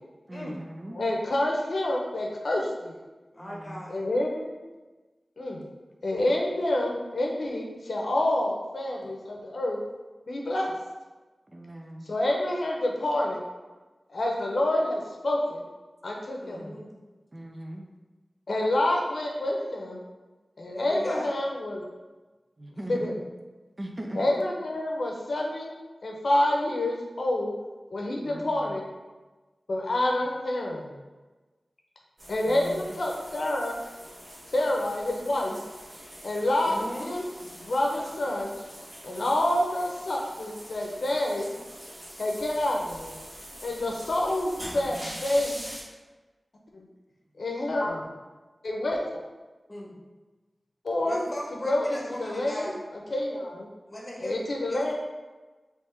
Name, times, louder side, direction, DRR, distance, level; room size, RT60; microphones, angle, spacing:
voice 1, 0.3-1.0 3.4-3.9 11.5-12.1 16.5-16.9 17.3-17.9 22.6-23.2 23.8-24.3 28.2-28.8 32.4-32.9 44.7-45.1, right 1 dB, 35° right, 1 dB, 0.5 m, -40 dB
voice 2, 0.9-3.0 3.9-4.5 5.4-5.6 6.0-9.8 10.3-10.7 12.1-13.4 14.1-15.6 16.0-16.6 18.5-20.0 20.6-21.8 22.9-23.1 24.2-25.7 26.0-27.5 27.9-28.8 29.7-30.9 32.3-33.8 34.5-35.6 36.2-37.2 37.6-38.5 39.0-41.5 42.2-43.1 43.6-45.6 46.7-46.9 47.4-48.1 48.6-49.0 50.8-51.2 51.6-53.7 54.2-54.9, left 1 dB, 75° left, -1 dB, 0.6 m, -28 dB
voice 3, 3.3-4.0 16.4-16.8 20.7-21.3 36.6-37.1 49.7-50.0 51.0-52.8 53.9-54.3 54.7-54.9, left 1 dB, 30° left, -3 dB, 1.2 m, -38 dB
sound 1, 32.2-45.8, equal, 60° right, 1.5 m, -44 dB
3.5 x 3.0 x 4.3 m, 1.2 s
wide cardioid pair, 70°, 0 cm